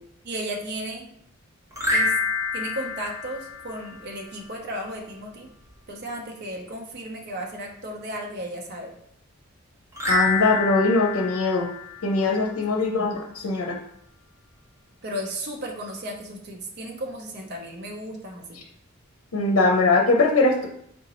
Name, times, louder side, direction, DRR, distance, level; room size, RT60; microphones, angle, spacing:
voice 1, 0.2-1.1 1.9-2.1 2.5-5.5 5.9-8.9 12.8-13.2 15.0-18.4, right 1 dB, 50° right, 1 dB, 0.7 m, -34 dB
sound 1, 1.7-4.2 9.9-12.6, left 4 dB, 15° right, 0.8 m, -28 dB
voice 2, 10.1-11.7 12.0-13.8 19.3-20.7, left 3 dB, 85° left, 1 dB, 0.6 m, -21 dB
3.9 x 3.6 x 2.9 m, 0.68 s
head